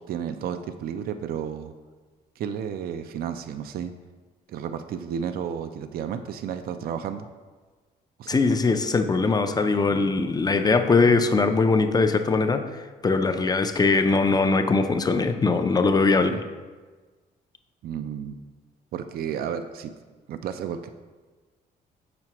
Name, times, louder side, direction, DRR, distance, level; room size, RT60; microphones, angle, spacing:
voice 1, 0.1-1.7 2.4-3.9 4.5-7.3 8.2-8.6 17.8-18.4 18.9-19.9 20.3-20.9, right 8 dB, 65° right, 9 dB, 0.4 m, -32 dB
voice 2, 8.3-16.4, left 3 dB, 25° left, 8 dB, 0.4 m, -21 dB
6.6 x 5.9 x 2.9 m, 1.4 s
cardioid pair, 90°, 17 cm